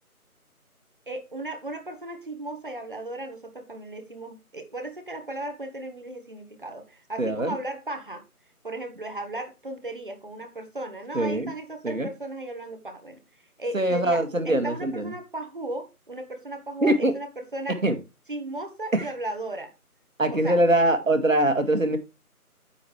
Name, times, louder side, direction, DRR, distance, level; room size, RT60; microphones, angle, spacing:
voice 1, 1.1-8.2 8.6-13.2 13.6-17.8 18.3-19.7 20.3-20.6, right 2 dB, 35° right, 1.6 m, -36 dB
voice 2, 7.2-7.5 11.1-11.5 11.8-12.1 13.7-15.1 16.8-17.1 17.8-18.0 18.9-19.1 20.2-22.0, right 1 dB, 60° right, 2.1 m, -22 dB
10.0 x 7.7 x 3.2 m
figure-of-eight pair, 170°, 44 cm